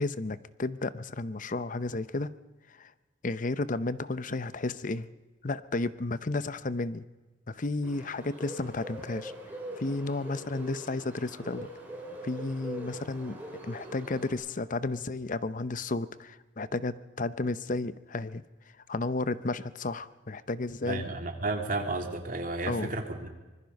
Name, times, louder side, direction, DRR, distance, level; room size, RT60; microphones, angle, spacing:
voice 1, 0.0-2.3 2.8-2.9 3.2-5.1 5.4-7.1 7.5-9.3 9.8-11.7 12.2-18.4 18.9-21.1 22.7-22.9, left 2 dB, 45° left, 15 dB, 0.8 m, -32 dB
Bird, 7.8-14.3, right 1 dB, 10° right, 5.7 m, -43 dB
voice 2, 20.8-23.3, right 2 dB, 50° right, 4 dB, 2.7 m, -32 dB
25.0 x 20.5 x 5.4 m, 1.2 s
head